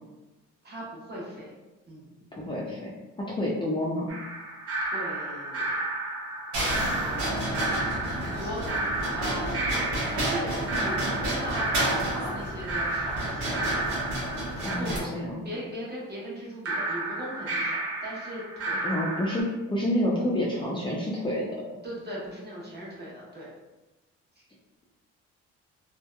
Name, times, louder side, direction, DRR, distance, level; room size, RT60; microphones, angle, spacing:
voice 1, 0.6-1.6 1.9-2.1 4.8-5.8 6.6-7.3 8.1-9.6 10.1-10.5 10.8-14.0 14.5-18.8 21.8-23.5 24.4-24.5, equal, 35° right, -6 dB, 1.0 m, -39 dB
voice 2, 2.3-2.9 3.3-4.1 14.6-15.4 18.8-21.4, left 1 dB, 15° left, -6 dB, 0.4 m, -28 dB
sound 1, 4.1-14.7 16.7-19.4, right 2 dB, 50° right, 0.7 m, -32 dB
sound 2, 6.5-15.0, right 1 dB, 75° right, 1.0 m, -31 dB
2.7 x 2.1 x 2.3 m, 1.1 s
cardioid pair, 90°, 30 cm